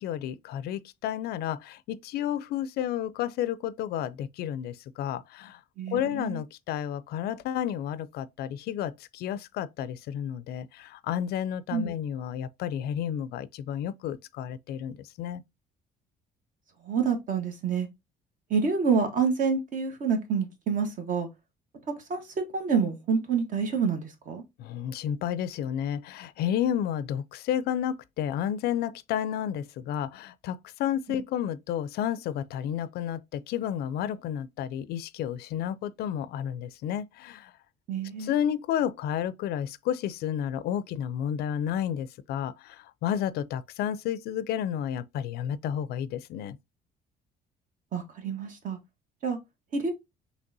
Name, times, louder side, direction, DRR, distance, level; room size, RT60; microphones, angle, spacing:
voice 1, 0.0-5.6 5.9-15.4 24.6-37.5 38.2-46.6, left 10 dB, 70° left, 0.4 m, -31 dB
voice 2, 5.8-6.4 11.7-11.9 16.9-17.9 18.5-21.3 22.1-22.2 22.5-24.4 37.9-38.3 47.9-48.8 49.2-49.4 49.7-49.9, right 5 dB, 50° right, 1.2 m, -27 dB
5.3 x 3.2 x 2.6 m
cardioid pair, 110°, 17 cm